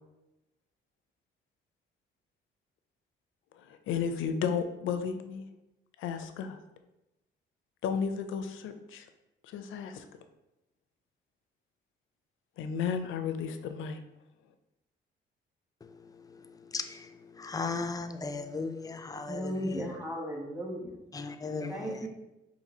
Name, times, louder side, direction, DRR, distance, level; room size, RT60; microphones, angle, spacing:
voice 1, 3.6-5.5 6.0-6.6 7.8-9.1 9.4-10.0 12.6-14.0, left 6 dB, 80° left, 8 dB, 0.4 m, -33 dB
voice 2, 17.4-19.5 21.1-21.7, left 4 dB, 20° left, 8 dB, 0.3 m, -35 dB
voice 3, 19.3-21.0 21.7-22.1, equal, 5° right, -1 dB, 1.0 m, -35 dB
5.2 x 2.7 x 2.7 m, 0.95 s
cardioid pair, 90°, 20 cm